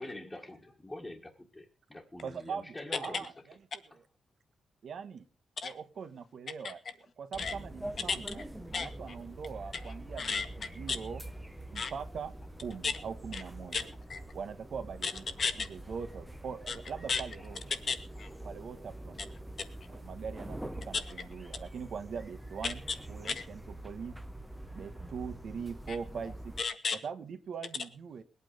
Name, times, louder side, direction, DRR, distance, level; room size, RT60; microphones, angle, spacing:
voice 1, 0.0-3.3, left 1 dB, 10° left, -3 dB, 1.9 m, -45 dB
voice 2, 2.2-3.3 4.8-5.3 5.6-6.8 7.2-8.4 8.7-11.2 11.7-12.3 12.6-13.9 14.3-15.3 15.5-17.7 18.4-19.3 19.9-20.6 20.8-24.2 24.7-26.5 27.0-28.2, right 6 dB, 60° right, 8 dB, 1.6 m, -42 dB
sound 1, 7.3-26.6, right 1 dB, 5° right, 1.0 m, -45 dB
voice 3, 8.7-9.2 9.8-10.5 10.9-11.0 11.7-11.9 12.8-12.9 13.3-13.4 13.7-14.2 15.0-15.1 15.4-15.7 16.7-16.8 17.1-17.2 17.7-18.3 19.6-19.7 20.9-21.0 22.6-22.7 23.2-23.4 25.9-26.0 26.6-27.0, left 5 dB, 45° left, 10 dB, 1.6 m, -34 dB
20.5 x 8.9 x 5.1 m, 0.37 s
wide cardioid pair, 140°, 0 cm